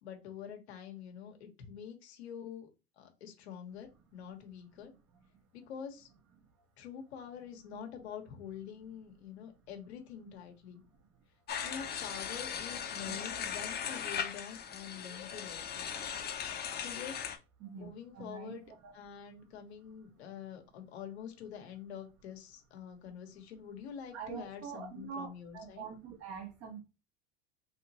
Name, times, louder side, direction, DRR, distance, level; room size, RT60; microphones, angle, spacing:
voice 1, 0.0-2.7 3.0-4.9 5.5-6.1 6.8-10.8 11.6-15.9 16.8-17.3 17.7-18.6 18.9-25.9, left 8 dB, 85° left, 1.1 m, -46 dB
sound 1, 11.5-17.4, left 8 dB, 30° left, 0.7 m, -38 dB
voice 2, 17.6-18.9 24.1-26.8, right 6 dB, 50° right, 1.4 m, -45 dB
3.3 x 2.9 x 2.8 m
supercardioid pair, 105°, 32 cm